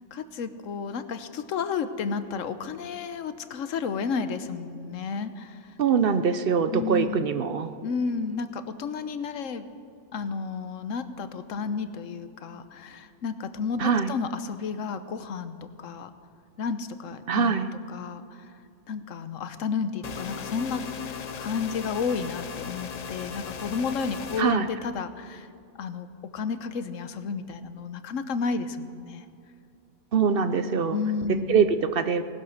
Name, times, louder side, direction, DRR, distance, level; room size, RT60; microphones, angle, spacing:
voice 1, 0.0-5.7 6.7-7.3 7.8-9.6 10.1-16.1 16.6-18.5 18.9-25.5 25.8-26.1 26.3-29.2 30.9-31.6, left 5 dB, 85° left, 11 dB, 1.2 m, -32 dB
voice 2, 5.8-7.7 13.8-14.1 17.3-17.7 24.4-24.7 30.1-31.0 31.5-32.2, right 6 dB, 55° right, 11 dB, 0.8 m, -23 dB
sound 1, 20.0-24.4, left 6 dB, 45° left, 0.6 m, -37 dB
19.0 x 11.0 x 6.5 m, 2.5 s
omnidirectional pair, 1.3 m